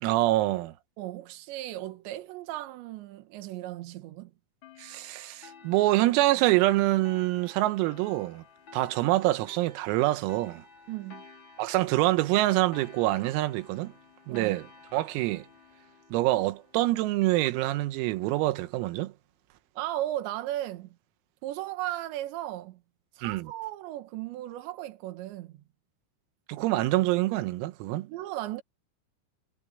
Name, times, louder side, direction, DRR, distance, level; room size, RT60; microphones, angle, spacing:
voice 1, 0.0-0.7 4.8-8.4 8.7-10.7 11.6-13.9 14.3-14.7 14.9-15.5 16.1-19.1 23.2-23.5 26.5-28.1, right 17 dB, 90° right, 3.8 m, -26 dB
voice 2, 1.0-4.3 10.9-11.2 14.3-14.6 19.8-21.0 21.4-22.8 23.2-25.6 28.1-28.6, right 14 dB, 70° right, 3.5 m, -36 dB
sound 1, 4.6-17.7, left 4 dB, 55° left, 1.3 m, -53 dB
omnidirectional pair, 6.0 m